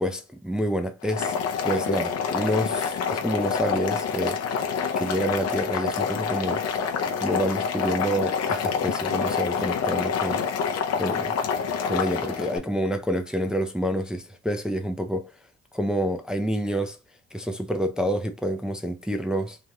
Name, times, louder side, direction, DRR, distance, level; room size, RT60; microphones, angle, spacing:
voice 1, 0.0-1.3 1.6-4.4 5.0-6.6 7.2-10.4 11.0-11.4 11.8-15.3 15.7-17.0 17.3-19.6, equal, 5° right, 0.4 m, -28 dB
Boiling, 1.0-12.6, left 6 dB, 60° left, 0.6 m, -27 dB
3.1 x 2.3 x 2.8 m
cardioid pair, 90°, 30 cm